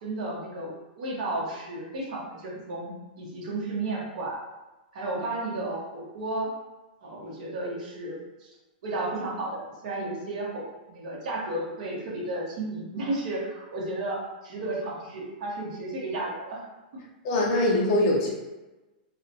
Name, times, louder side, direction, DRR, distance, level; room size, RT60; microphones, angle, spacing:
voice 1, 0.0-4.4 4.9-6.5 7.0-8.5 8.8-16.6, right 2 dB, 45° right, -4 dB, 0.9 m, -33 dB
voice 2, 17.2-18.3, left 1 dB, 30° left, -3 dB, 0.5 m, -22 dB
3.9 x 2.1 x 2.7 m, 1.1 s
supercardioid pair, 180°, 5 cm